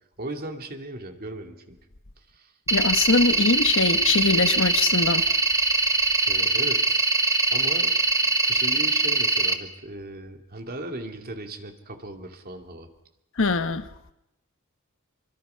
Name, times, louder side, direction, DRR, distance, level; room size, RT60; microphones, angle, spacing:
voice 1, 0.2-1.8 2.3-2.5 6.3-7.1 7.5-8.0 8.2-12.9, right 1 dB, 45° right, 2.5 m, -37 dB
voice 2, 2.7-5.3 13.4-13.9, left 4 dB, 65° left, 1.1 m, -22 dB
sound 1, 2.7-9.5, right 3 dB, 15° right, 1.3 m, -22 dB
26.0 x 23.5 x 5.7 m
head